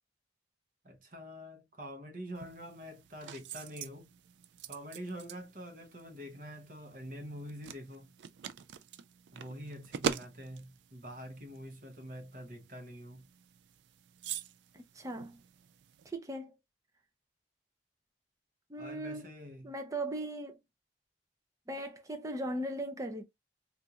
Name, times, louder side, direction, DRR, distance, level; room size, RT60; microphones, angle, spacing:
voice 1, 0.8-4.1 4.7-8.1 9.3-13.3 18.8-19.7, equal, 50° right, 1.0 m, -46 dB
sound 1, 2.3-16.1, right 7 dB, 80° right, 0.3 m, -44 dB
voice 2, 14.7-15.4 16.0-16.5 18.7-19.2 19.6-20.6 21.7-23.2, right 1 dB, 20° right, 0.5 m, -38 dB
3.5 x 2.4 x 2.8 m
head